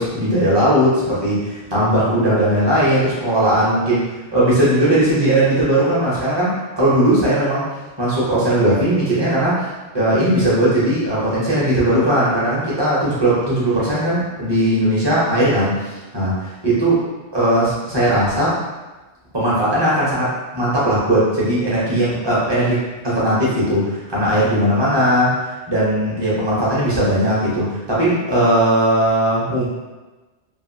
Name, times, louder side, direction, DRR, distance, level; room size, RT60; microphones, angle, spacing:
voice 1, 0.0-7.7 8.0-9.6 9.9-16.9 17.3-18.6 19.3-22.8 23.0-25.4 25.7-29.7, right 1 dB, 25° right, -8 dB, 0.8 m, -18 dB
2.6 x 2.5 x 2.6 m, 1.2 s
omnidirectional pair, 1.2 m